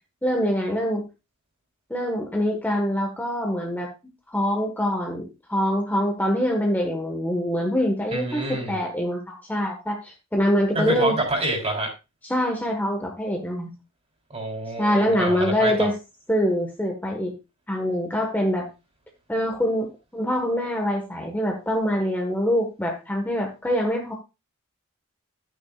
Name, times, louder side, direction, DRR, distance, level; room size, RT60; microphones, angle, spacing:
voice 1, 0.2-1.0 1.9-3.9 4.3-11.1 12.2-13.7 14.8-15.9 16.3-17.3 17.7-18.7 19.3-24.1, equal, 10° left, 1 dB, 1.3 m, -24 dB
voice 2, 8.1-8.8 10.7-11.9 14.3-15.9, right 1 dB, 30° right, 0 dB, 3.6 m, -27 dB
12.5 x 9.0 x 2.4 m, 0.27 s
head